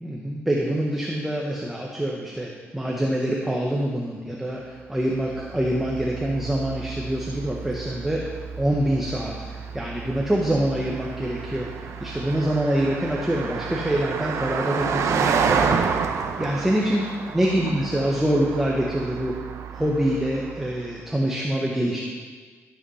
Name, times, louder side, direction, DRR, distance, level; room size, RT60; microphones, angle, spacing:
voice 1, 0.0-8.2 8.6-11.7 12.0-15.9 16.4-17.0 17.3-19.3 19.7-22.0, right 1 dB, 5° right, -2 dB, 1.1 m, -25 dB
Car passing by, 5.1-20.9, right 6 dB, 90° right, 0.9 m, -30 dB
13.5 x 8.1 x 5.6 m, 1.5 s
wide cardioid pair, 165°, 5 cm